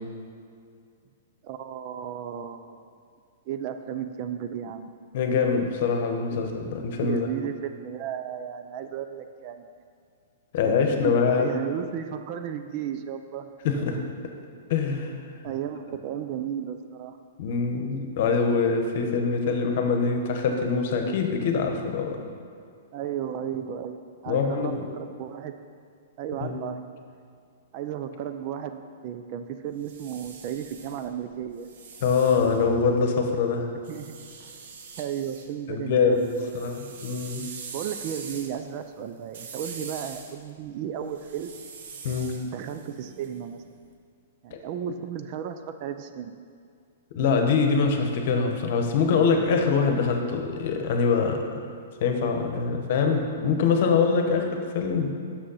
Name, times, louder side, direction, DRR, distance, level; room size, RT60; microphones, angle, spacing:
voice 1, 1.4-2.8 3.5-4.9 6.3-6.5 6.9-9.7 10.6-13.5 13.8-14.0 15.4-17.2 22.9-24.0 24.2-25.6 26.2-26.8 27.7-31.7 33.9-34.2 35.0-36.6 37.7-41.6 42.4-43.6 44.4-46.4, right 9 dB, 40° right, 8 dB, 0.4 m, -34 dB
voice 2, 5.1-7.3 10.5-11.5 13.6-14.0 14.7-15.1 17.4-22.2 24.3-24.9 26.4-26.6 32.0-33.6 35.7-37.5 42.0-42.3 44.5-44.6 47.1-51.4 52.0-55.1, left 5 dB, 55° left, 4 dB, 1.0 m, -24 dB
sound 1, 29.6-33.2 33.8-35.5 35.8-43.8, right 5 dB, 65° right, 0.9 m, -44 dB
6.4 x 6.2 x 5.6 m, 2.3 s
hypercardioid pair, 145°, 0 cm